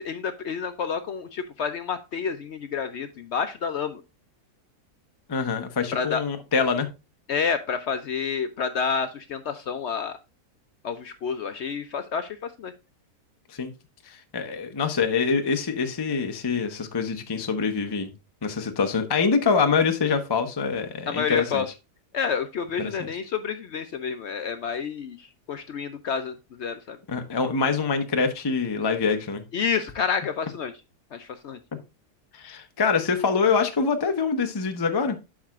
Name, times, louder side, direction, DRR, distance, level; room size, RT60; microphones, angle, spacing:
voice 1, 0.0-4.0 5.9-6.2 7.3-10.2 10.8-12.7 21.1-21.7 22.1-27.0 29.5-30.7 31.1-31.6, left 6 dB, 65° left, 9 dB, 0.6 m, -29 dB
voice 2, 5.3-6.9 13.5-13.7 14.1-18.1 18.4-21.6 22.8-23.1 27.1-29.4 32.3-35.2, left 5 dB, 25° left, 6 dB, 0.5 m, -25 dB
12.0 x 4.9 x 2.4 m, 0.27 s
omnidirectional pair, 1.7 m